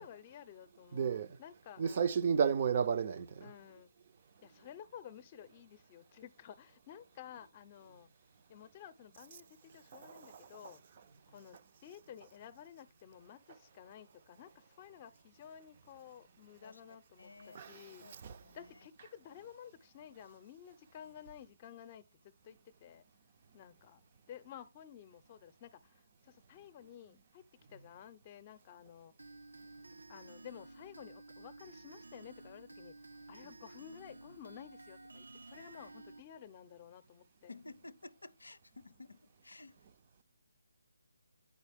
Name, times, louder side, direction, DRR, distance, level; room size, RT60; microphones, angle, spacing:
voice 1, 0.0-2.2 3.4-3.9 4.4-8.1 8.5-10.8 11.3-18.1 18.5-23.1 23.5-27.4 27.7-29.1 30.1-37.5, left 9 dB, 30° left, 0.6 m, -53 dB
voice 2, 0.9-1.4 1.8-3.5 9.9-10.7 17.5-18.4, right 7 dB, 35° right, 0.5 m, -33 dB
voice 3, 17.2-17.6 18.0-18.1 18.4-18.6 37.5-39.8, left 2 dB, 85° left, 0.5 m, -53 dB
sound 1, 29.2-36.2, right 2 dB, 85° right, 0.6 m, -53 dB
9.5 x 4.1 x 3.5 m
figure-of-eight pair, 155°, 0 cm